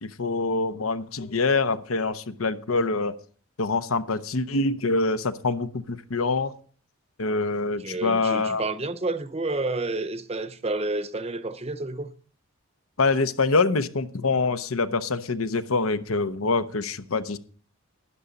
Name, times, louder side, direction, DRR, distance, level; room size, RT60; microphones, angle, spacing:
voice 1, 0.0-3.1 3.6-6.5 7.2-8.6 13.0-17.4, left 3 dB, 85° left, 0.9 m, -25 dB
voice 2, 7.8-12.1, right 2 dB, 30° right, 0.8 m, -30 dB
12.5 x 10.0 x 4.1 m
head